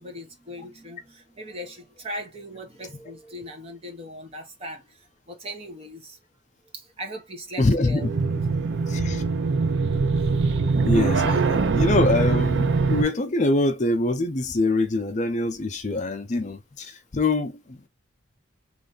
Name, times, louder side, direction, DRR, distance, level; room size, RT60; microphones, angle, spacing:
voice 1, 0.0-5.0 5.3-6.2 6.7-8.1 9.9-10.0, equal, 30° right, 1.0 m, -39 dB
voice 2, 7.6-8.1 8.8-9.2 10.8-17.9, left 2 dB, 35° left, 0.5 m, -24 dB
sound 1, 8.0-13.0, right 4 dB, 65° right, 0.5 m, -22 dB
3.3 x 2.6 x 3.9 m
head